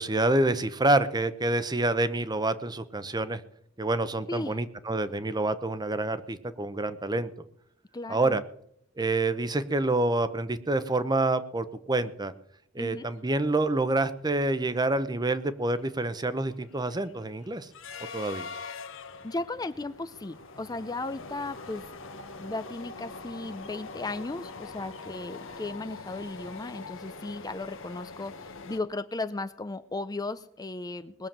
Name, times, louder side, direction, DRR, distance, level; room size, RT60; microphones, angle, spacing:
voice 1, 0.0-3.4 3.8-7.3 8.1-8.4 9.0-12.3 12.7-17.7 18.1-18.5, right 2 dB, 20° right, 13 dB, 0.8 m, -27 dB
voice 2, 7.9-8.4 12.8-13.1 19.2-21.9 22.4-31.3, left 2 dB, 20° left, 12 dB, 0.5 m, -36 dB
sound 1, 13.8-14.0 14.4-28.8, left 4 dB, 70° left, 1.3 m, -44 dB
20.0 x 7.1 x 7.4 m, 0.70 s
head